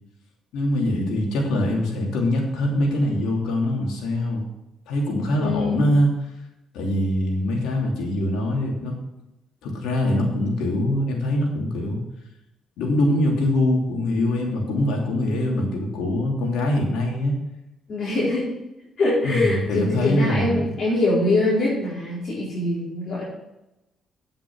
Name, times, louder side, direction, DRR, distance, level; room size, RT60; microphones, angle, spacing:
voice 1, 0.5-4.4 4.9-6.1 6.7-9.0 9.6-12.0 12.8-17.3 18.1-18.2 19.2-20.7, left 1 dB, 90° left, -1 dB, 2.9 m, -23 dB
voice 2, 5.4-5.8 17.9-18.6 19.0-23.2, left 2 dB, 50° left, -8 dB, 4.3 m, -23 dB
9.2 x 7.4 x 6.2 m, 0.93 s
cardioid pair, 90°, 0 cm